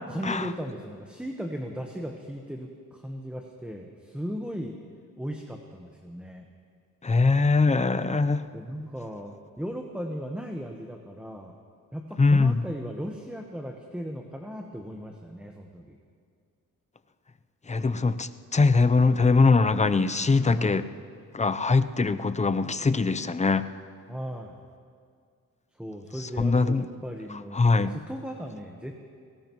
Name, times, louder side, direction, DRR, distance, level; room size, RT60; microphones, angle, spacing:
voice 1, 0.1-4.8 5.2-6.5 8.5-11.6 11.9-16.0 20.5-20.8 24.1-24.6 25.7-28.9, equal, 5° right, 2 dB, 1.2 m, -37 dB
voice 2, 7.0-8.4 12.2-12.6 17.7-20.9 21.3-23.7 26.4-26.9 27.5-27.9, left 3 dB, 20° left, 12 dB, 0.6 m, -22 dB
22.0 x 17.5 x 3.1 m, 2.2 s
cardioid pair, 70°, 34 cm